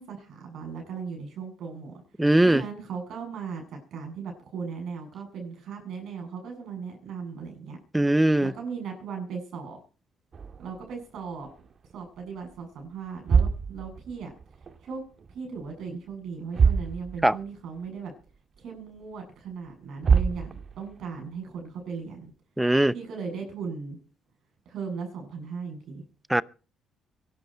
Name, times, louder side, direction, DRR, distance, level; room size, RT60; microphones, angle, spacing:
voice 1, 0.0-1.9 2.4-7.8 8.4-9.8 10.6-11.5 11.9-14.3 14.8-15.0 15.3-18.1 18.6-22.3 22.9-24.0 24.6-26.0, right 5 dB, 70° right, 7.7 m, -37 dB
voice 2, 2.2-2.6 7.9-8.5 17.2-17.4 22.6-22.9 26.3-26.4, right 1 dB, 10° right, 0.7 m, -20 dB
sound 1, 10.3-12.0 12.3-12.6 13.1-14.9 15.2-16.1 16.5-17.5 17.8-17.9 18.6-18.7 19.7-19.8 20.0-21.0, right 6 dB, 50° right, 1.7 m, -26 dB
22.5 x 12.0 x 4.6 m
cardioid pair, 90°, 0 cm